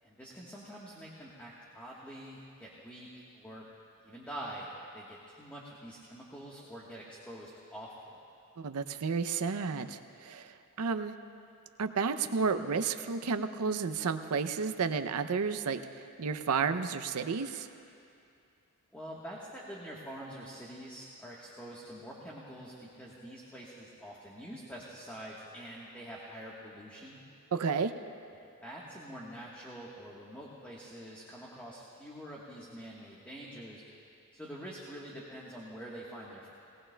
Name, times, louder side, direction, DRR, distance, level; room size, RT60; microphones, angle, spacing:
voice 1, 0.0-3.6 4.0-4.7 4.9-7.9 18.9-27.2 28.6-33.8 34.3-36.5, right 1 dB, 10° left, -5 dB, 1.2 m, -46 dB
voice 2, 8.6-11.1 11.8-15.8 16.2-17.7 27.5-27.9, right 5 dB, 85° right, 9 dB, 0.5 m, -31 dB
19.5 x 18.5 x 2.2 m, 2.6 s
head